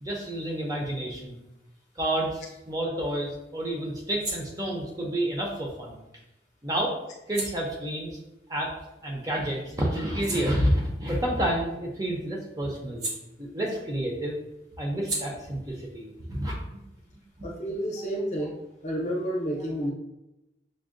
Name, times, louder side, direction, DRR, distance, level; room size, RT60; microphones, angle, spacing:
voice 1, 0.0-1.4 2.0-6.0 6.6-7.0 7.3-8.2 8.5-8.7 9.0-13.1 13.4-14.4 14.8-16.8, right 1 dB, 20° right, -2 dB, 0.5 m, -29 dB
sound 1, 2.4-9.3 9.7-13.9 14.2-17.6, right 2 dB, 70° right, 1.0 m, -42 dB
voice 2, 17.4-18.6 18.8-19.9, equal, 40° left, -1 dB, 0.7 m, -30 dB
6.1 x 2.1 x 2.5 m, 0.92 s
head